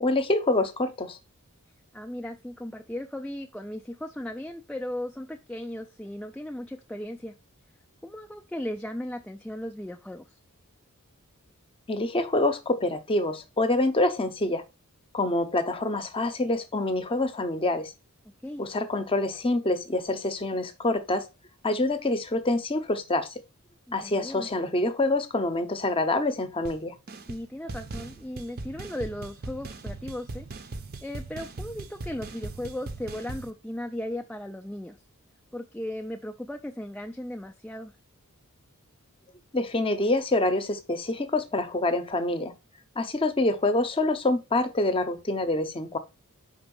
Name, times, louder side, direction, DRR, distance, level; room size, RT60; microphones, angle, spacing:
voice 1, 0.0-1.2 11.9-14.6 15.1-17.9 18.6-21.2 21.6-23.3 23.9-26.9 39.5-42.5 43.0-46.0, left 2 dB, 25° left, 0.7 m, -26 dB
voice 2, 1.9-7.3 8.0-10.2 18.4-18.7 23.9-24.5 27.3-30.5 31.0-35.0 35.5-37.9, left 1 dB, 5° left, 0.3 m, -36 dB
sound 1, 26.6-26.8 27.1-27.4 27.7-33.5, right 2 dB, 45° right, 0.6 m, -39 dB
5.2 x 3.9 x 5.3 m
head